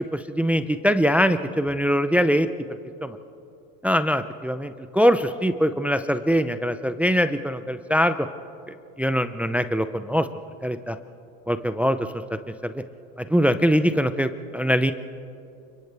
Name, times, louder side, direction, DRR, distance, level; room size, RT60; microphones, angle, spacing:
voice 1, 0.1-2.5 3.0-3.2 3.8-8.3 9.0-10.3 10.6-11.0 11.5-12.0 12.6-12.8 13.2-14.9, equal, 5° right, 10 dB, 0.5 m, -22 dB
29.5 x 26.5 x 3.4 m, 2.6 s
supercardioid pair, 110°, 41 cm